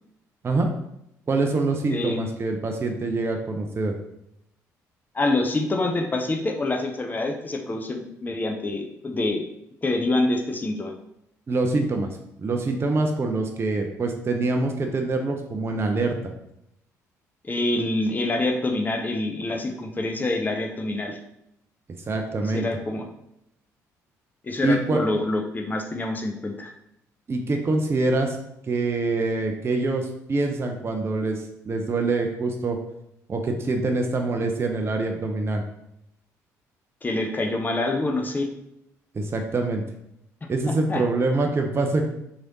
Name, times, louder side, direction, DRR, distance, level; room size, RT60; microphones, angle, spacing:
voice 1, 1.3-4.0 11.5-12.1 12.4-16.2 22.1-22.7 24.6-25.0 27.3-28.4 28.7-32.8 33.3-35.6 39.1-39.8 40.5-42.1, right 3 dB, 30° right, 3 dB, 0.5 m, -25 dB
voice 2, 1.9-2.2 5.1-9.4 9.8-10.9 17.4-21.2 22.4-23.1 24.4-26.7 37.0-38.5 40.7-41.0, left 2 dB, 20° left, 3 dB, 0.5 m, -26 dB
3.0 x 2.9 x 2.6 m, 0.80 s
hypercardioid pair, 50°, 8 cm